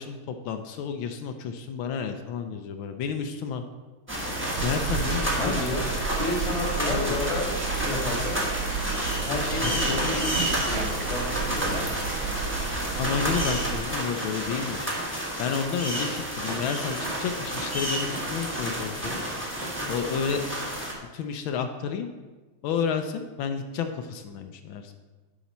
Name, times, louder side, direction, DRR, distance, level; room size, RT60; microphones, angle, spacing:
voice 1, 0.0-3.6 4.6-5.8 6.9-7.2 9.6-10.1 13.0-14.9 15.4-19.4 19.9-20.4 21.1-22.1 22.6-24.9, left 6 dB, 75° left, 7 dB, 1.3 m, -31 dB
sound 1, 4.1-20.9, right 1 dB, 10° right, 1.0 m, -30 dB
sound 2, 4.6-13.8, right 6 dB, 90° right, 0.8 m, -33 dB
voice 2, 5.4-5.9 6.2-8.4 9.1-11.9 19.8-20.2, left 2 dB, 20° left, -1 dB, 1.2 m, -32 dB
Tools, 15.0-15.2 15.4-17.3 17.6-18.5 19.0-19.9, right 3 dB, 45° right, 1.0 m, -39 dB
10.0 x 4.9 x 4.2 m, 1.3 s
omnidirectional pair, 2.4 m